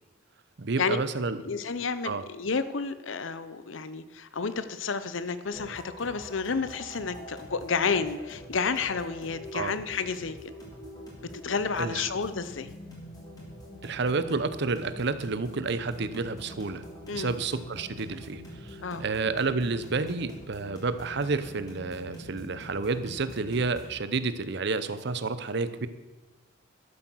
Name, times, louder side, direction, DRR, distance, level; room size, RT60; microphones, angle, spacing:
voice 1, 0.6-1.4 2.0-2.2 9.5-9.7 11.8-12.1 13.8-16.8 17.1-25.9, right 4 dB, 60° right, 13 dB, 0.7 m, -30 dB
voice 2, 1.4-10.4 11.2-12.7 17.1-17.3 18.8-19.0, left 5 dB, 75° left, 13 dB, 0.8 m, -31 dB
sound 1, 5.5-24.0, equal, 20° left, 3.3 m, -45 dB
12.5 x 7.9 x 6.2 m, 1.2 s
head